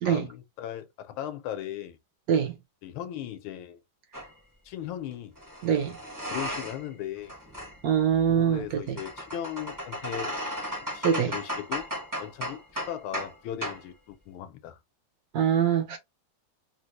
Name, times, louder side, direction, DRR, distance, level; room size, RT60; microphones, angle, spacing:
voice 1, 0.0-2.0 2.8-3.8 4.6-5.3 6.3-7.3 8.3-10.3 10.9-11.8 12.2-14.8, left 11 dB, 85° left, 1.5 m, -37 dB
sound 1, 4.1-4.3 5.4-6.9 7.2-13.3 13.6-13.8, equal, 20° right, 0.5 m, -36 dB
voice 2, 5.6-6.0 7.8-9.0 11.0-11.3 15.3-16.0, right 8 dB, 70° right, 0.8 m, -24 dB
4.0 x 2.1 x 2.9 m
omnidirectional pair, 2.3 m